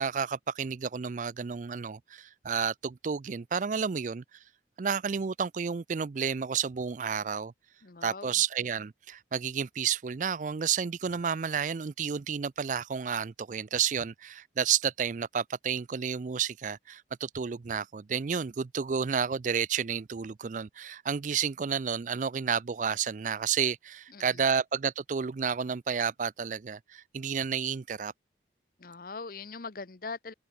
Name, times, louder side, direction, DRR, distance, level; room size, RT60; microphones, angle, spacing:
voice 1, 0.0-4.2 4.8-7.5 8.0-28.1, right 7 dB, 45° right, 0.4 m, -31 dB
voice 2, 7.8-8.3 24.1-24.4 28.8-30.3, left 4 dB, 50° left, 0.8 m, -41 dB
head